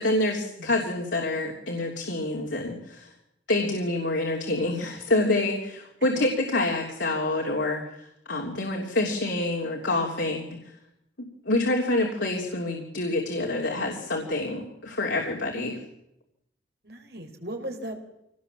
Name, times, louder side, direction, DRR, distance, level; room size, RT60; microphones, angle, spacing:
voice 1, 0.0-3.1 3.5-10.7 11.4-15.8, left 2 dB, 80° left, 0 dB, 3.2 m, -27 dB
voice 2, 16.8-18.1, right 1 dB, 60° right, 3 dB, 4.2 m, -37 dB
24.5 x 19.0 x 7.5 m, 0.85 s
head